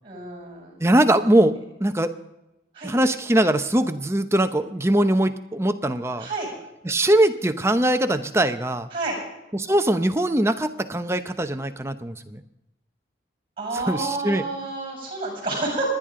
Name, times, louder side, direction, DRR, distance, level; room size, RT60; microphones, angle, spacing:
voice 1, 0.0-0.8 2.7-2.9 6.2-6.5 8.9-9.2 13.6-15.9, right 2 dB, 30° right, 0 dB, 7.0 m, -29 dB
voice 2, 0.8-1.5 1.8-2.1 2.8-6.3 6.8-8.9 9.5-12.4 13.7-14.4, right 1 dB, 15° right, 8 dB, 0.7 m, -21 dB
28.0 x 10.5 x 3.8 m, 0.96 s
head